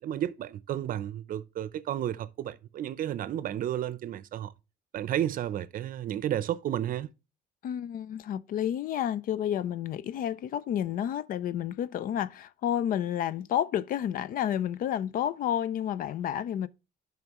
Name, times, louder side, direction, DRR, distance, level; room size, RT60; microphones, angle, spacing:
voice 1, 0.0-4.5 4.9-7.1, right 11 dB, 55° right, 0.6 m, -32 dB
voice 2, 7.6-16.7, left 10 dB, 55° left, 0.5 m, -30 dB
11.0 x 5.8 x 3.0 m
cardioid pair, 110°, 17 cm